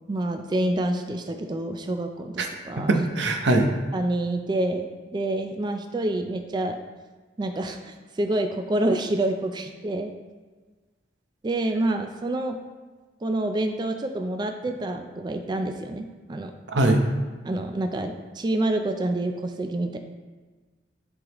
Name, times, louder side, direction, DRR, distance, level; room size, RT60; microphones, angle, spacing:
voice 1, 0.1-2.9 3.9-6.8 7.4-10.1 11.4-12.6 13.2-16.5 17.4-20.0, right 1 dB, 25° right, 5 dB, 0.3 m, -27 dB
voice 2, 2.8-3.7 16.7-17.0, right 2 dB, 85° right, 3 dB, 0.8 m, -21 dB
10.5 x 3.9 x 2.9 m, 1.3 s
head